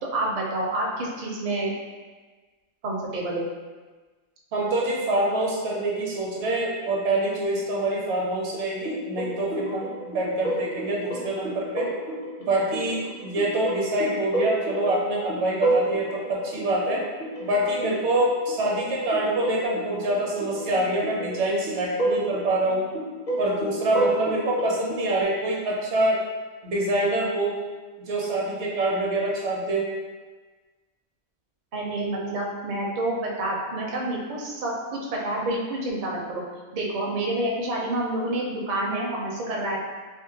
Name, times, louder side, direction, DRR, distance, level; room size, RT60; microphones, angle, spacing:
voice 1, 0.0-1.7 2.8-3.5 31.7-36.4 36.7-39.8, right 1 dB, 50° right, -3 dB, 0.5 m, -28 dB
voice 2, 4.5-11.9 12.4-17.0 17.4-22.9 23.4-26.2 26.6-27.6 28.0-29.9, right 1 dB, 70° right, -3 dB, 0.9 m, -25 dB
sound 1, 8.8-25.2, right 1 dB, 40° left, 0.6 m, -31 dB
3.6 x 2.1 x 2.7 m, 1.3 s
omnidirectional pair, 1.3 m